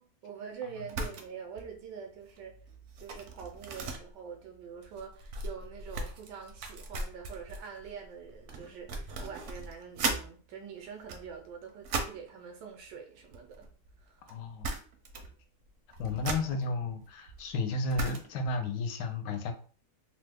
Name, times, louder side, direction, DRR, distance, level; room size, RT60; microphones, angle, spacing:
voice 1, 0.0-2.5 3.0-13.7 14.0-14.3, right 7 dB, 90° right, 1.2 m, -45 dB
sound 1, 0.9-1.3 1.6-1.8 2.2-10.3 10.9-12.3 13.2-14.0 14.3-14.4 14.6-15.4 15.7-18.5, right 3 dB, 65° right, 0.7 m, -38 dB
voice 2, 14.3-14.7 16.0-19.5, left 3 dB, 80° left, 1.2 m, -33 dB
3.1 x 2.1 x 3.3 m
omnidirectional pair, 1.8 m